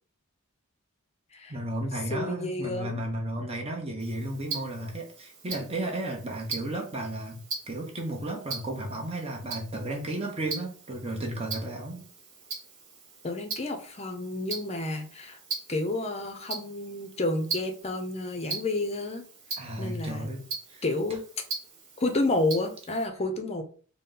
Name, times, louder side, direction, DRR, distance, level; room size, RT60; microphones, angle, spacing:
voice 1, 1.5-7.4 7.7-12.1 19.6-20.4 20.7-20.8, right 1 dB, 30° right, 0 dB, 0.9 m, -33 dB
voice 2, 2.1-3.0 13.2-15.4 15.7-19.3 19.8-20.3 20.8-21.2 22.0-23.6, left 2 dB, 30° left, 6 dB, 0.6 m, -30 dB
Tick-tock, 4.0-23.1, right 4 dB, 60° right, 1.3 m, -41 dB
4.1 x 2.1 x 3.7 m, 0.41 s
head